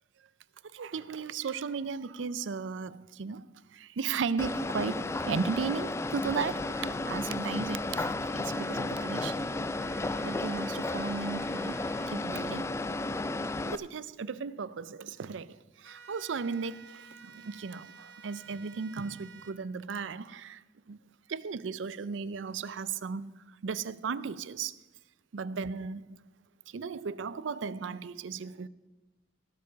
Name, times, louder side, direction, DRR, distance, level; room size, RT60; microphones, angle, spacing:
voice 1, 0.7-9.4 10.2-11.8 12.1-12.7 13.6-20.6 20.9-21.0 21.3-23.3 23.6-24.8 25.3-26.1 26.7-28.7, right 5 dB, 85° right, 0.5 m, -36 dB
sound 1, 4.4-13.8, left 2 dB, 15° left, 0.3 m, -33 dB
sound 2, 8.5-9.4 9.8-12.1 15.8-19.5, right 6 dB, 70° right, 1.4 m, -52 dB
17.5 x 6.7 x 5.2 m
head